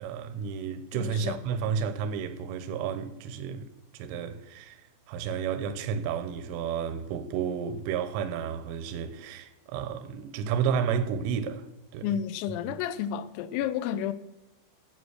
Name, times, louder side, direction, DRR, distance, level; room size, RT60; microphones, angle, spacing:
voice 1, 0.0-3.7 3.9-4.8 5.1-11.7 11.9-12.1 12.7-12.8, right 7 dB, 80° right, 3.2 m, -31 dB
voice 2, 0.9-1.4 12.0-14.1, left 10 dB, 85° left, 3.3 m, -31 dB
9.7 x 9.3 x 6.3 m
omnidirectional pair, 6.0 m